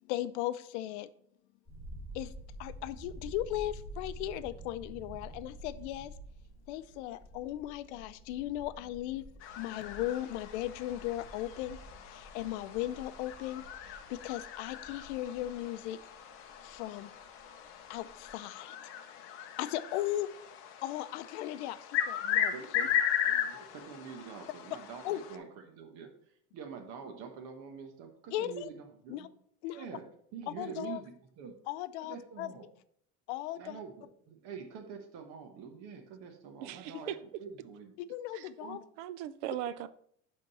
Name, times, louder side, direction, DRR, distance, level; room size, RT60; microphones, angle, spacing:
voice 1, 0.1-1.1 2.1-2.3 2.6-6.1 6.7-9.3 9.5-16.0 16.6-17.1 17.9-18.9 19.6-20.3 20.8-22.9 25.0-25.2 28.3-28.7 29.1-29.3 29.6-29.9 30.5-31.0 31.7-32.5 33.3-33.8 37.0-37.1 38.1-38.8, left 14 dB, 70° left, 14 dB, 0.5 m, -37 dB
sound 1, 1.7-17.4 17.7-18.3, right 1 dB, 5° right, 3.0 m, -49 dB
sound 2, 9.4-25.4, left 9 dB, 35° left, 0.7 m, -37 dB
voice 2, 22.5-26.1 26.5-29.3 29.7-30.0 30.3-31.5 32.0-32.7 33.5-37.1 37.4-37.9 38.6-38.8, right 6 dB, 45° right, 4 dB, 1.1 m, -46 dB
voice 3, 36.6-37.2 38.3-38.5 39.0-39.9, right 12 dB, 75° right, 15 dB, 0.6 m, -38 dB
10.0 x 3.7 x 4.1 m, 0.67 s
cardioid pair, 180°, 36 cm